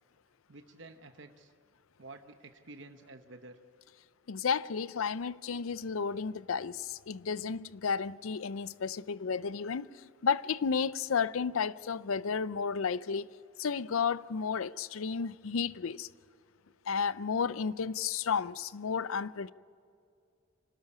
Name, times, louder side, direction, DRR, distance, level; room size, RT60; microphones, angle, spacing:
voice 1, 0.5-1.5 2.0-3.6, right 2 dB, 60° right, 0.9 m, -50 dB
voice 2, 4.3-9.9 10.2-13.3 13.6-16.1 16.9-19.5, left 6 dB, 85° left, 0.5 m, -32 dB
25.5 x 13.0 x 9.8 m
head